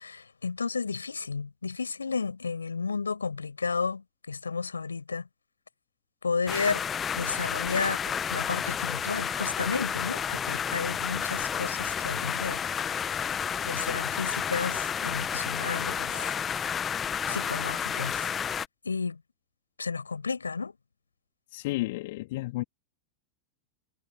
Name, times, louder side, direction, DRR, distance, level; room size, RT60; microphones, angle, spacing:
voice 1, 0.0-5.3 6.2-6.8 7.1-12.6 13.6-16.3 17.3-18.3 18.8-19.2 19.8-20.7, left 4 dB, 75° left, 7.2 m, -32 dB
sound 1, 6.5-18.7, left 8 dB, 20° left, 1.2 m, -31 dB
voice 2, 21.5-22.6, left 19 dB, 50° left, 2.9 m, -32 dB
figure-of-eight pair, 90°, 0 cm